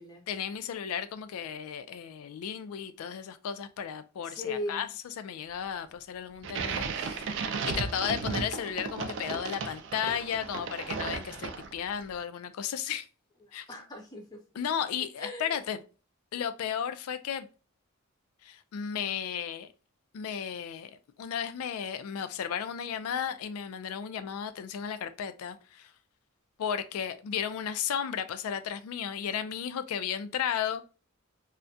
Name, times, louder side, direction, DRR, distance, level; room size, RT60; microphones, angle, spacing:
voice 1, 0.3-4.9 5.2-13.1 13.5-13.7 14.6-15.8 16.3-17.5 18.4-19.7 20.1-20.9 21.2-25.9 26.6-30.8, left 8 dB, 90° left, 0.3 m, -34 dB
voice 2, 4.2-4.8 13.4-14.5 15.2-15.6, left 2 dB, 20° left, 0.4 m, -38 dB
sound 1, 6.4-11.9, right 5 dB, 60° right, 0.3 m, -35 dB
2.3 x 2.1 x 2.5 m
head